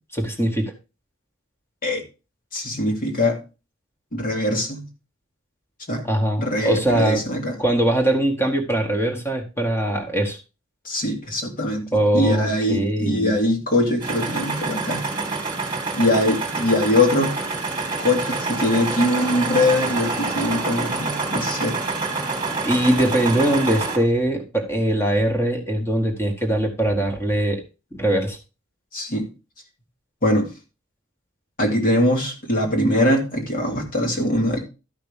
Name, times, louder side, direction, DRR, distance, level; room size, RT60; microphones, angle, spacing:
voice 1, 0.1-0.7 6.0-7.2 7.6-10.4 11.9-13.4 22.7-27.6 27.9-28.4, right 1 dB, 10° left, 3 dB, 1.9 m, -21 dB
voice 2, 2.5-3.4 4.1-4.9 5.9-6.0 6.4-7.6 10.8-15.1 16.0-17.3 18.0-21.8 28.9-29.3 30.2-30.5 31.6-34.6, left 1 dB, 45° left, 2 dB, 2.6 m, -22 dB
sound 1, 14.0-24.0, right 3 dB, 20° right, 2.1 m, -27 dB
13.0 x 5.8 x 3.6 m, 0.29 s
head